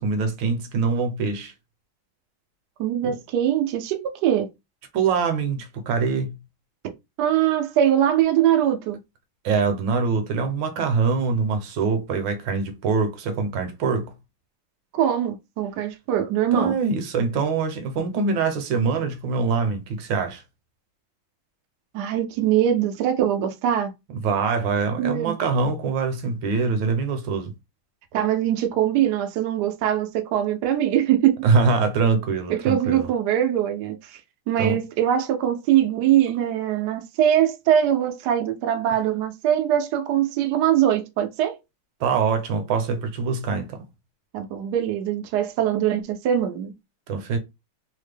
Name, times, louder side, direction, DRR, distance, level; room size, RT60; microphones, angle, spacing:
voice 1, 0.0-1.5 3.0-3.2 4.9-6.4 9.4-14.1 16.5-20.4 24.1-27.5 31.4-33.1 34.6-34.8 38.9-39.0 42.0-43.8 47.1-47.4, right 4 dB, 70° right, 1.3 m, -24 dB
voice 2, 2.8-4.5 7.2-9.0 14.9-16.8 21.9-23.9 25.0-25.4 28.1-31.5 32.5-34.2 34.5-41.6 44.3-46.7, right 10 dB, 85° right, 0.9 m, -22 dB
3.4 x 2.1 x 3.3 m
omnidirectional pair, 2.4 m